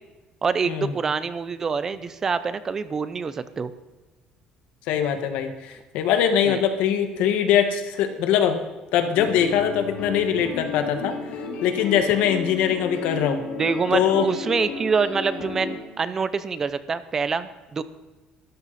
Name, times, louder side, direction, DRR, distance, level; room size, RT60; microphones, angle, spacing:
voice 1, 0.4-3.7 6.4-6.6 13.5-17.8, right 5 dB, 20° right, 13 dB, 0.6 m, -26 dB
voice 2, 4.9-8.6 8.9-11.1 11.6-13.4 13.9-14.3, left 9 dB, 80° left, 7 dB, 1.7 m, -22 dB
sound 1, 9.1-15.7, left 4 dB, 55° left, 4.4 m, -33 dB
22.5 x 13.5 x 4.3 m, 1.2 s
cardioid pair, 175°, 2 cm